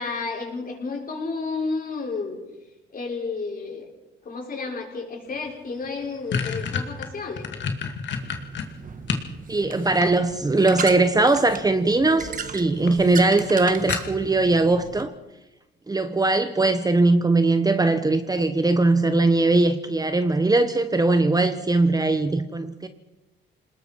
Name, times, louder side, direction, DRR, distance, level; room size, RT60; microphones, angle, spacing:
voice 1, 0.0-2.4 2.9-3.9 4.2-7.5, left 4 dB, 45° left, 6.2 m, -31 dB
sound 1, 5.4-5.5 5.8-9.3 9.7-10.6 11.7-12.1 12.4-12.5 12.9-13.0 13.3-13.4 13.9-14.4, left 6 dB, 65° left, 2.3 m, -29 dB
sound 2, 8.1-15.1, right 6 dB, 45° right, 1.5 m, -36 dB
voice 2, 9.5-15.1 15.9-22.9, right 2 dB, 20° right, 1.2 m, -20 dB
28.0 x 20.0 x 4.7 m
cardioid pair, 90°, 20 cm